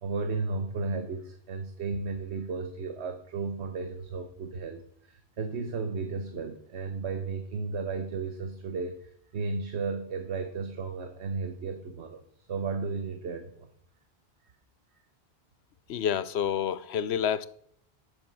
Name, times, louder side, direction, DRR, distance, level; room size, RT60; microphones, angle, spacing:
voice 1, 0.0-13.7, right 4 dB, 85° right, 1.2 m, -34 dB
voice 2, 15.9-17.5, left 8 dB, 80° left, 0.9 m, -28 dB
11.0 x 7.1 x 6.2 m
omnidirectional pair, 1.1 m